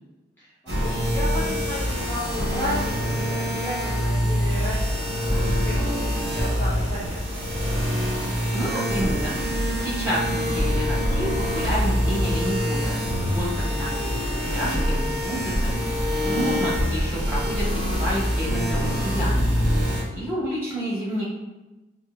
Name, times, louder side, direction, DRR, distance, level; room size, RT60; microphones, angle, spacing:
voice 1, 0.4-7.6 13.2-13.7 16.1-16.4, equal, 10° left, -10 dB, 0.5 m, -34 dB
sound 1, 0.7-20.0, equal, 70° right, 1.1 m, -25 dB
voice 2, 8.5-9.4 9.7-15.8 16.2-19.7 20.1-21.2, equal, 10° right, -9 dB, 0.9 m, -30 dB
4.2 x 2.0 x 2.3 m, 1.1 s
head